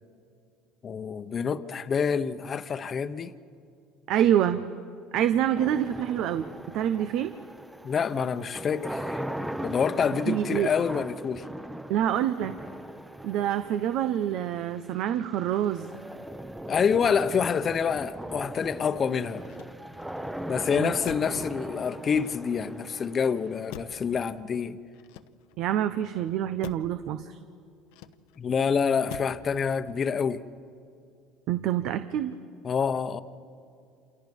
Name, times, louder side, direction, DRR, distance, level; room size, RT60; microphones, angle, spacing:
voice 1, 0.8-3.3 7.8-9.2 9.6-11.5 16.7-19.4 20.5-24.8 28.4-30.4 32.6-33.2, left 6 dB, 35° left, 12 dB, 1.0 m, -27 dB
voice 2, 4.1-4.6 5.1-7.3 10.3-10.7 11.9-12.5 13.2-15.9 20.8-20.9 25.6-27.4 31.5-32.3, right 10 dB, 65° right, 10 dB, 0.9 m, -26 dB
sound 1, 5.5-24.6, right 1 dB, 5° right, 0.9 m, -39 dB
Motor vehicle (road), 19.4-20.2 21.0-21.5 22.1-22.8 23.7-24.2 24.9-25.7 26.6-27.0 27.9-28.5 29.1-29.5 29.8-30.3, left 12 dB, 80° left, 1.0 m, -45 dB
28.5 x 27.5 x 5.5 m, 2.4 s
supercardioid pair, 110°, 0 cm